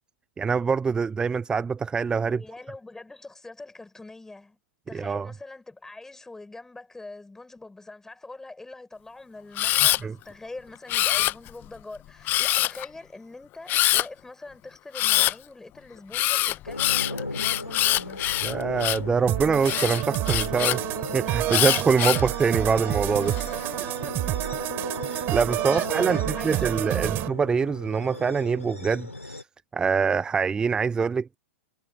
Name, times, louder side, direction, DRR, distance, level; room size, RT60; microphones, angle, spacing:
voice 1, 0.4-2.4 4.9-5.3 10.0-10.1 18.4-20.8 21.1-23.4 25.1-29.4 29.7-31.4, right 5 dB, 10° right, 0.6 m, -24 dB
voice 2, 2.2-4.6 4.9-18.3 20.8-20.9 23.4-24.7 25.3-27.3, left 2 dB, 5° left, 5.8 m, -43 dB
Camera, 9.6-10.0 10.9-11.7 12.3-12.9 13.7-14.1 14.9-15.3 16.1-19.1 19.6-20.8 21.5-22.3 22.9-23.4, left 15 dB, 25° left, 0.9 m, -24 dB
sound 1, 16.7-29.4, left 2 dB, 85° left, 4.8 m, -37 dB
sound 2, 19.3-27.3, right 17 dB, 30° right, 4.0 m, -29 dB
figure-of-eight pair, 105°, 7 cm